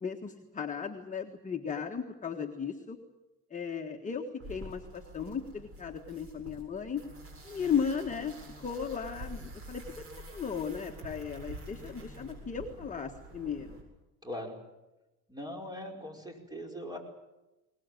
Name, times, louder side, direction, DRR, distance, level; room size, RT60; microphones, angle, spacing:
voice 1, 0.0-3.0 3.5-7.0 7.4-10.0 10.3-13.8, left 6 dB, 25° left, 2 dB, 1.6 m, -36 dB
sound 1, 4.4-13.8, right 1 dB, 45° right, 7.7 m, -47 dB
voice 2, 14.2-14.6 15.3-17.0, equal, 10° right, 3 dB, 4.9 m, -40 dB
22.0 x 20.5 x 9.2 m, 1.0 s
cardioid pair, 125°, 32 cm